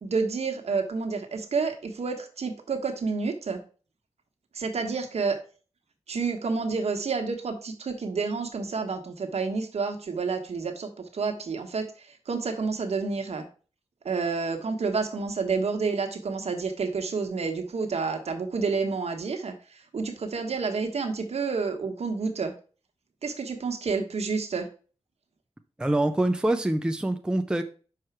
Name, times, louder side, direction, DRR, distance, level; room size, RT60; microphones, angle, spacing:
voice 1, 0.0-3.6 4.5-5.4 6.1-13.4 14.0-22.5 23.2-24.7, right 4 dB, 75° right, 4 dB, 1.3 m, -29 dB
voice 2, 25.8-27.6, right 1 dB, 5° right, 7 dB, 0.5 m, -25 dB
5.9 x 4.8 x 4.5 m, 0.37 s
wide cardioid pair, 130°, 11 cm